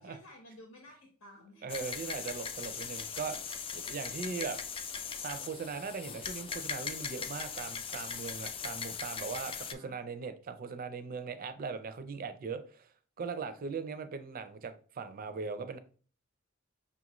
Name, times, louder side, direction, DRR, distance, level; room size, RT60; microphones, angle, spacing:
voice 1, 0.0-1.8 9.5-10.1, left 1 dB, 80° left, 0.9 m, -54 dB
voice 2, 1.6-4.6 5.2-12.9 13.2-15.8, right 5 dB, 45° right, 0.4 m, -39 dB
sound 1, 1.7-9.7, left 6 dB, 25° left, 0.3 m, -39 dB
5.6 x 2.4 x 3.0 m
head